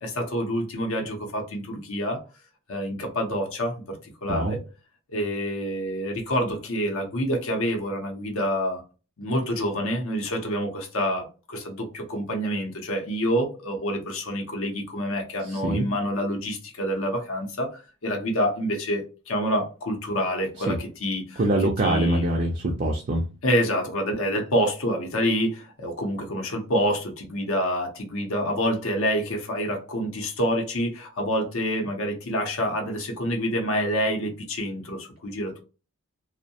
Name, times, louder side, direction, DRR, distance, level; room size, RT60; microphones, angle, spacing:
voice 1, 0.0-2.2 2.7-4.6 5.1-8.8 9.2-22.3 23.4-35.5, equal, 70° left, 0.7 m, -27 dB
voice 2, 15.5-15.9 20.7-20.8 21.4-23.3, right 1 dB, 35° right, 0.4 m, -24 dB
2.6 x 2.1 x 2.7 m
head